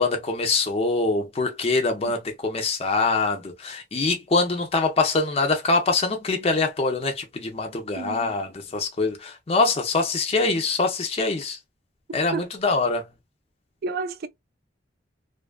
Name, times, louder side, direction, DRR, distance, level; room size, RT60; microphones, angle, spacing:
voice 1, 0.0-11.6 12.1-13.0, left 3 dB, 30° left, 0.5 m, -24 dB
voice 2, 8.0-8.3 12.3-12.5 13.8-14.3, right 4 dB, 50° right, 0.4 m, -31 dB
2.5 x 2.3 x 2.2 m
head